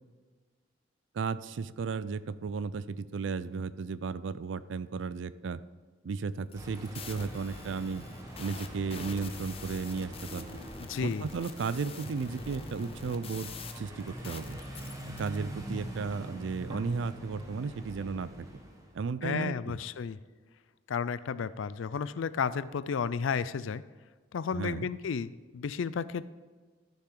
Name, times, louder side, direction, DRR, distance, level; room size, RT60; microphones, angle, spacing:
voice 1, 1.1-5.6 6.0-8.0 8.4-10.6 11.0-13.5 13.8-14.6 15.2-18.5 18.9-19.8 24.5-24.9, right 5 dB, 70° right, 16 dB, 0.4 m, -34 dB
sound 1, 6.4-15.4, left 5 dB, 30° left, 0.7 m, -46 dB
sound 2, 6.5-19.0, right 1 dB, 20° right, 1.3 m, -44 dB
voice 2, 10.9-11.2 19.2-20.2 20.9-23.8 24.3-26.3, left 6 dB, 85° left, 16 dB, 0.4 m, -32 dB
12.5 x 6.8 x 3.8 m, 1.5 s
head